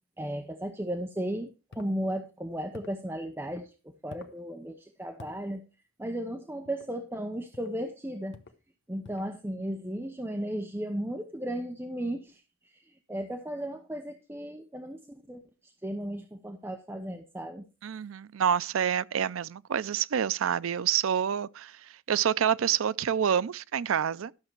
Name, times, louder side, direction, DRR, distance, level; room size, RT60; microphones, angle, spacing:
voice 1, 0.2-3.7 4.0-5.6 6.0-8.4 8.9-17.6, right 1 dB, 10° right, 0.7 m, -35 dB
sound 1, 1.7-1.9 2.7-3.0 4.1-4.4 5.2-5.4 6.6-6.9 7.5-7.8 8.3-8.6 9.0-9.4, left 3 dB, 55° left, 1.0 m, -49 dB
voice 2, 17.8-24.3, right 8 dB, 90° right, 0.4 m, -28 dB
12.5 x 6.6 x 4.5 m
head